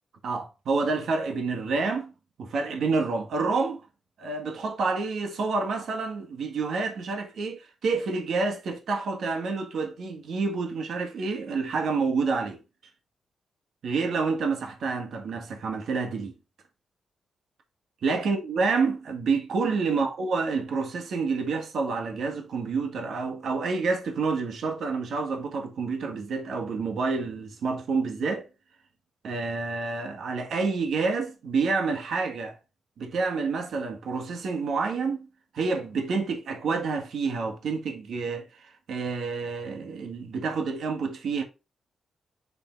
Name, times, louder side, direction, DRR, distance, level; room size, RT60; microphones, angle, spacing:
voice 1, 0.2-2.1 2.4-3.8 4.2-12.6 13.8-16.3 18.0-28.4 29.2-32.6 33.0-35.3 35.5-41.4, right 4 dB, 70° right, 1.6 m, -28 dB
6.9 x 3.6 x 3.9 m
wide cardioid pair, 130°, 0 cm